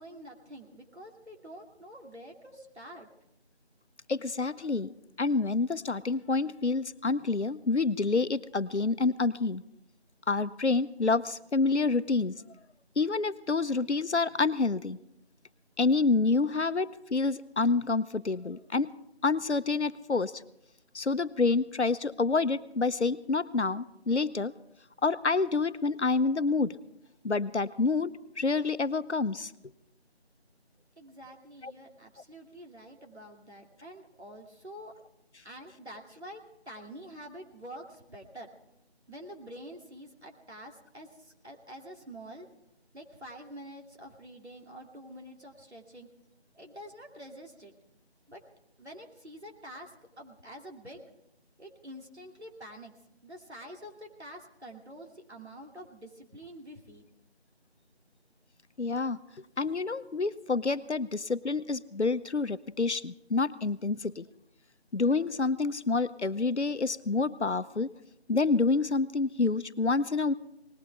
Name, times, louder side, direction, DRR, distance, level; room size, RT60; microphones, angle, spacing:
voice 1, 0.0-3.1 31.0-34.9 35.4-36.4 36.7-38.5 39.1-42.5 42.9-46.1 46.5-47.7 48.3-48.4 48.8-49.9 50.2-51.0 51.6-52.9 53.2-57.1, equal, 75° right, 1 dB, 2.8 m, -47 dB
voice 2, 4.1-4.9 5.2-9.6 10.3-12.4 13.0-15.0 15.8-19.0 19.2-20.4 20.9-24.5 25.0-26.8 27.2-29.5 31.6-31.7 58.8-59.2 59.6-64.3 64.9-67.9 68.3-70.3, left 3 dB, 85° left, 14 dB, 0.8 m, -28 dB
19.5 x 17.5 x 3.5 m, 0.82 s
figure-of-eight pair, 180°, 33 cm